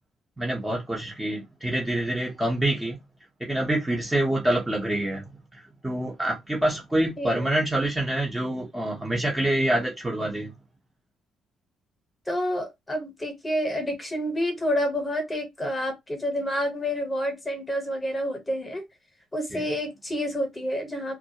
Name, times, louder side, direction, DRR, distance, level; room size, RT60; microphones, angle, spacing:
voice 1, 0.4-3.0 3.4-10.5 19.5-19.6, right 1 dB, 10° right, 0.7 m, -26 dB
voice 2, 7.2-7.5 12.3-18.9 19.3-21.2, equal, 15° left, 1.0 m, -29 dB
2.3 x 2.0 x 2.7 m
cardioid pair, 120°, 0 cm